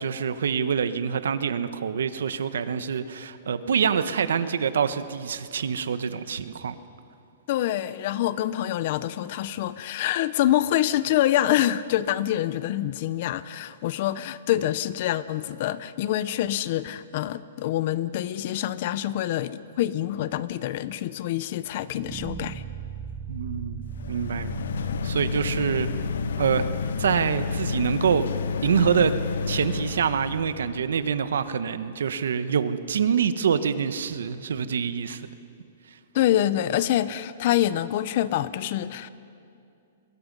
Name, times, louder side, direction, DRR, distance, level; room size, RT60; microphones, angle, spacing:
voice 1, 0.0-6.7 23.3-23.8 24.1-24.5 25.0-25.9 26.4-26.7 27.0-28.3 28.6-29.2 29.5-35.3, right 7 dB, 85° right, 12 dB, 1.2 m, -25 dB
voice 2, 7.5-22.6 36.1-39.1, left 13 dB, 40° left, 16 dB, 0.7 m, -26 dB
sound 1, 22.0-31.1, right 8 dB, 15° right, 0.9 m, -40 dB
sound 2, 23.9-30.5, left 5 dB, 80° left, 0.9 m, -30 dB
30.0 x 21.5 x 5.4 m, 2.5 s
hypercardioid pair, 170°, 0 cm